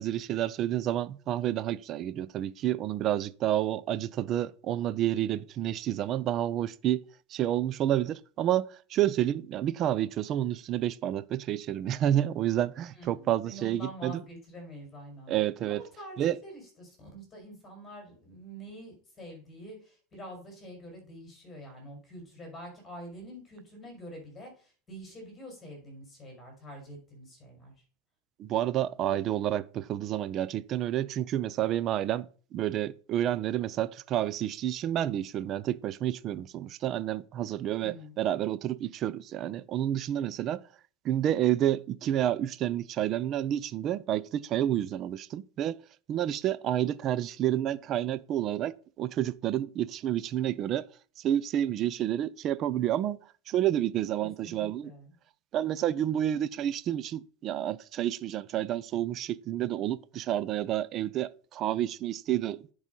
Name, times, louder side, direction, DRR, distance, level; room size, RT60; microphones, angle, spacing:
voice 1, 0.0-7.0 7.3-14.2 15.3-15.8 16.2-16.4 28.4-32.3 32.5-40.6 41.0-45.8 46.1-50.8 51.2-53.2 53.5-54.9 55.5-62.6, right 12 dB, 35° right, 0.5 m, -29 dB
voice 2, 12.9-15.4 15.7-27.7 37.8-38.1 54.2-55.1, equal, 15° left, 5.3 m, -46 dB
9.8 x 4.8 x 5.4 m
supercardioid pair, 150°, 0 cm